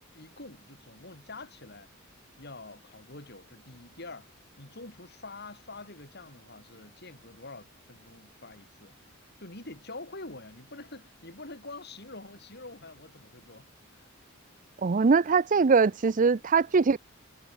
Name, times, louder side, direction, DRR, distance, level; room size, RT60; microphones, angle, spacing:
voice 1, 0.1-1.9 2.4-8.9 9.4-14.1, left 2 dB, 55° left, 6.8 m, -46 dB
voice 2, 14.8-17.0, right 4 dB, 40° right, 0.5 m, -22 dB
head